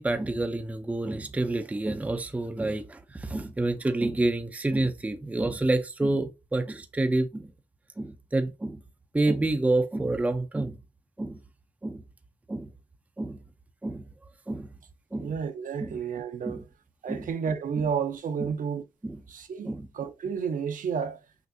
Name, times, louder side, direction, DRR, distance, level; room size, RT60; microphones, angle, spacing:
voice 1, 0.0-7.4 8.0-8.8 9.1-10.8 11.2-11.4 11.8-12.0 12.5-12.7 13.2-13.4 13.8-14.0 14.5-14.7 15.1-15.3 15.8-16.0 16.5-16.6 17.1-17.2 18.4-18.5 19.0-19.2 19.7-19.9, right 2 dB, 10° right, 0.5 m, -28 dB
voice 2, 15.2-16.7 17.0-18.8 19.3-21.2, right 6 dB, 55° right, 0.7 m, -31 dB
6.0 x 2.6 x 2.6 m
cardioid pair, 110°, 16 cm